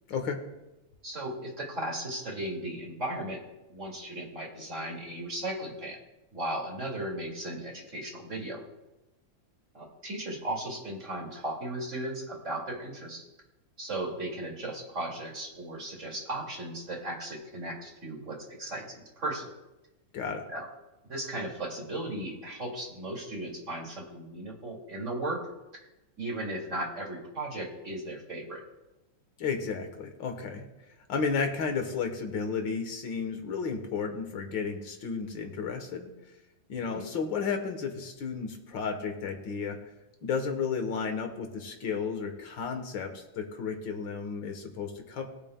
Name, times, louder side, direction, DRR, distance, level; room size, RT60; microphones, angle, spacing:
voice 1, 0.1-0.4 20.1-20.4 29.4-30.6 31.1-36.1 36.7-39.8 40.2-45.3, left 5 dB, 75° left, 5 dB, 1.9 m, -33 dB
voice 2, 1.0-3.4 3.7-6.0 6.3-8.6 9.7-13.2 13.8-19.5 20.5-20.7 21.1-25.4 26.2-28.6 36.8-37.1, right 1 dB, 40° right, -1 dB, 2.6 m, -36 dB
21.0 x 8.9 x 2.2 m, 0.99 s
omnidirectional pair, 2.1 m